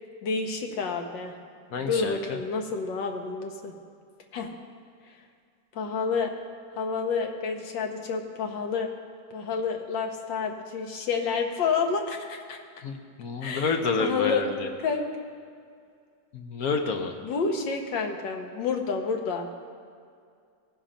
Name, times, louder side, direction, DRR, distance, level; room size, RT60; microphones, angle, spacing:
voice 1, 0.2-1.3 1.8-3.7 4.3-4.5 5.7-6.3 6.8-8.9 9.3-12.6 13.4-13.7 14.0-14.5 14.8-15.1 17.2-19.5, left 5 dB, 75° left, 3 dB, 1.7 m, -29 dB
voice 2, 1.7-2.4 12.8-14.7 16.3-17.1, left 4 dB, 60° left, 4 dB, 1.1 m, -29 dB
17.0 x 5.7 x 5.1 m, 2.2 s
omnidirectional pair, 2.0 m